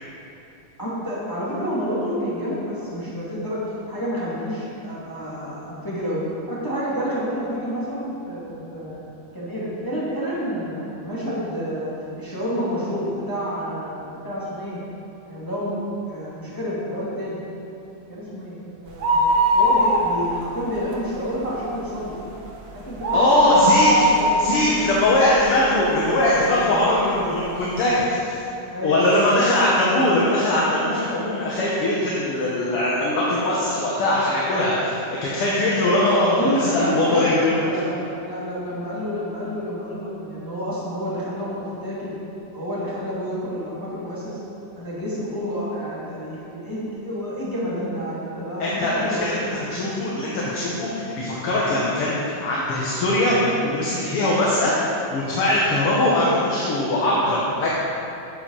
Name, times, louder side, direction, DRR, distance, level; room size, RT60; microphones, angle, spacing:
voice 1, 0.8-3.6 3.9-9.0 9.3-14.8 15.2-15.8 16.1-17.4 18.1-19.2 19.5-22.2 22.7-25.0 26.5-26.9 27.1-28.0 28.7-29.2 29.8-30.1 36.2-37.3 37.6-42.1 42.5-44.4 44.7-49.4, equal, 10° left, -8 dB, 1.7 m, -29 dB
sound 1, 18.9-20.5 20.8-20.9 21.4-25.8 26.3-26.4 27.2-27.3 27.5-27.6, equal, 80° right, 0.8 m, -20 dB
voice 2, 23.1-23.9 24.4-28.4 28.8-37.6 48.6-57.7, left 1 dB, 55° left, -6 dB, 1.9 m, -21 dB
10.5 x 7.9 x 5.5 m, 2.8 s
omnidirectional pair, 3.5 m